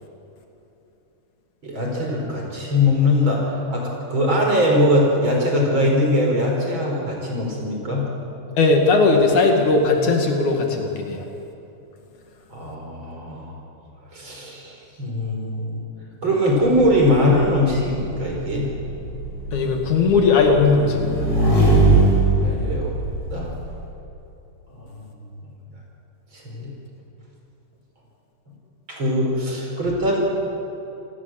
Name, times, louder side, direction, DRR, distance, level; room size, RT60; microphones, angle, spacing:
voice 1, 1.6-8.0 12.5-13.5 14.1-15.8 16.2-18.7 22.4-22.9 23.3-23.5 24.7-25.1 26.3-26.7 28.9-30.2, left 1 dB, 35° right, -1 dB, 5.4 m, -21 dB
voice 2, 8.6-11.2 19.5-21.3, left 3 dB, 70° left, 3 dB, 3.5 m, -18 dB
Motorcycle / Engine, 16.6-23.7, right 2 dB, 45° left, 8.0 m, -21 dB
27.5 x 18.5 x 7.7 m, 2.9 s
omnidirectional pair, 3.6 m